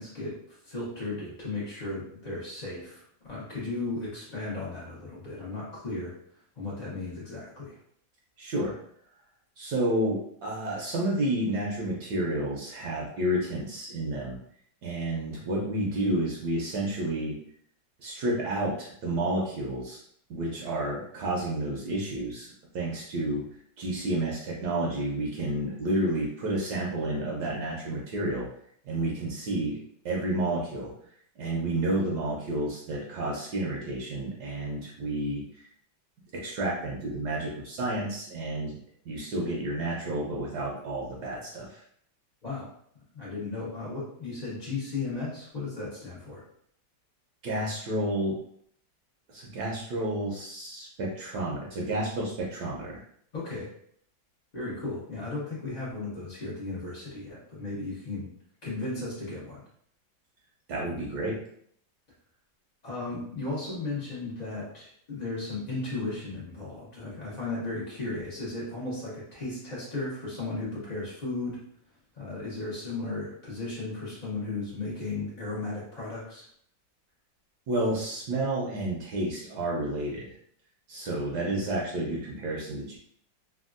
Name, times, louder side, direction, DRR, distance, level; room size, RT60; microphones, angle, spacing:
voice 1, 0.0-6.1 6.6-7.8 42.4-42.7 43.1-46.4 53.3-53.7 54.5-58.3 58.6-59.6 62.8-71.6 72.1-76.5, left 3 dB, 85° left, -7 dB, 0.3 m, -35 dB
voice 2, 8.4-8.7 9.6-14.4 14.8-17.4 18.0-20.0 20.3-22.5 22.7-23.4 23.8-28.5 28.8-29.8 30.0-30.9 31.4-35.6 36.3-38.8 39.0-41.8 47.4-48.4 49.3-53.0 60.7-61.4 77.7-80.4 80.9-83.0, right 1 dB, 70° right, -3 dB, 1.1 m, -30 dB
3.4 x 2.2 x 2.4 m, 0.65 s
omnidirectional pair, 2.0 m